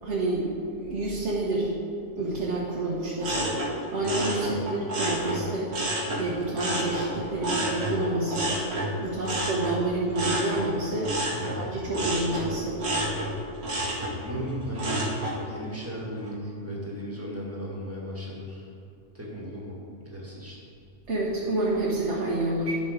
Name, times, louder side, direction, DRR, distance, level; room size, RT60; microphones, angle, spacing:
voice 1, 0.0-1.7 2.2-3.5 3.9-5.7 6.2-8.5 9.0-11.2 11.5-12.9 21.1-22.7, right 2 dB, 55° right, -6 dB, 1.5 m, -28 dB
sound 1, 3.2-6.2 6.5-15.4 15.8-16.3, right 1 dB, 85° right, 2.1 m, -30 dB
voice 2, 11.3-11.7 14.0-15.1 15.4-18.7 19.1-19.8 20.0-20.6, equal, 10° right, -4 dB, 1.7 m, -36 dB
10.5 x 5.6 x 5.0 m, 2.5 s
omnidirectional pair, 1.5 m